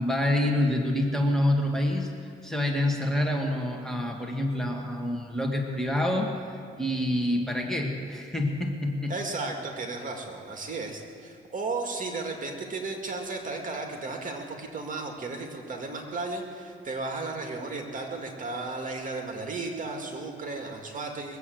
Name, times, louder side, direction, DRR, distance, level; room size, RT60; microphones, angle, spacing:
voice 1, 0.0-6.3 6.8-9.2, left 1 dB, ahead, 1 dB, 2.0 m, -27 dB
voice 2, 9.1-21.4, right 3 dB, 40° right, 2 dB, 2.2 m, -34 dB
21.0 x 8.2 x 7.8 m, 2.3 s
cardioid pair, 90°, 20 cm